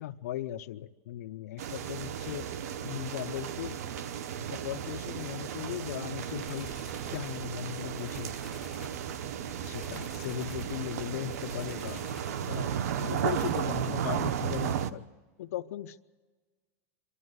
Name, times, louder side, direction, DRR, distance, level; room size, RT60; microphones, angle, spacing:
voice 1, 0.0-2.5 2.8-3.8 4.4-6.7 7.1-8.4 9.6-12.0 12.5-15.1 15.4-16.0, left 12 dB, 85° left, 12 dB, 0.6 m, -38 dB
sound 1, 1.6-14.9, right 9 dB, 90° right, 0.9 m, -34 dB
sound 2, 5.8-13.6, left 2 dB, 5° right, 2.3 m, -50 dB
26.5 x 12.5 x 8.0 m, 1.4 s
supercardioid pair, 150°, 8 cm